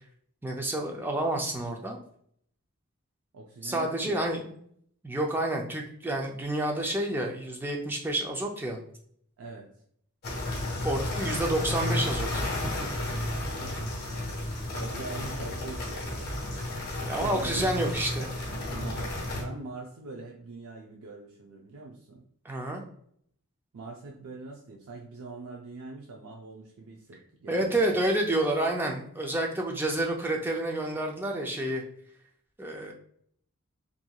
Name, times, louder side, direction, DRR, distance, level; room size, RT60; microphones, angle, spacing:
voice 1, 0.4-2.0 3.6-4.4 5.0-8.8 10.8-12.7 17.0-18.3 22.4-22.8 27.5-31.8 32.6-32.9, right 1 dB, 10° right, 1 dB, 0.4 m, -29 dB
voice 2, 3.3-4.4 9.4-9.7 13.4-14.4 14.7-16.4 16.7-17.9 18.5-22.2 23.7-28.0, right 3 dB, 75° right, -1 dB, 0.4 m, -43 dB
sound 1, 10.2-19.4, left 1 dB, 45° left, 0.9 m, -32 dB
2.8 x 2.5 x 2.2 m, 0.65 s
head